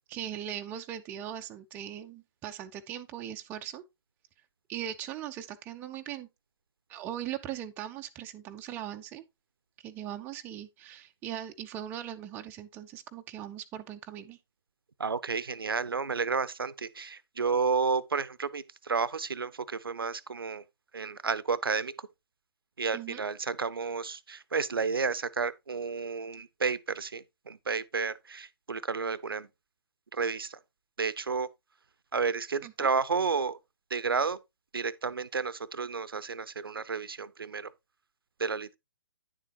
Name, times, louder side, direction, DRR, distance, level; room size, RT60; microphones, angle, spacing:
voice 1, 0.1-3.8 4.7-6.3 6.9-9.2 9.8-14.4 15.4-15.5 22.9-23.2 32.6-32.9, right 11 dB, 15° right, 0.5 m, -39 dB
voice 2, 15.0-20.6 20.9-21.9 22.8-29.5 30.1-30.6 31.0-31.5 32.1-33.6 33.9-34.4 34.7-37.7 38.4-38.8, right 5 dB, 65° right, 0.6 m, -31 dB
9.7 x 7.3 x 2.9 m
figure-of-eight pair, 125°, 13 cm